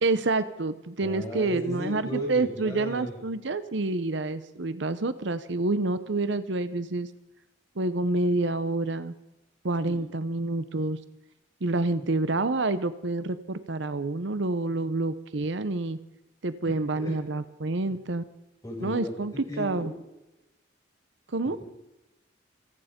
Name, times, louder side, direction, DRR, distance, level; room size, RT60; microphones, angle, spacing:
voice 1, 0.0-7.1 7.8-9.1 9.6-11.0 11.6-16.0 16.4-18.2 18.8-19.9 21.3-21.6, right 2 dB, 65° right, 13 dB, 0.8 m, -28 dB
voice 2, 1.0-3.1 9.8-10.0 12.0-12.1 16.9-17.1 17.9-18.0 18.6-19.9 21.4-21.7, right 1 dB, 20° left, -2 dB, 6.6 m, -36 dB
27.5 x 9.5 x 5.2 m, 0.95 s
head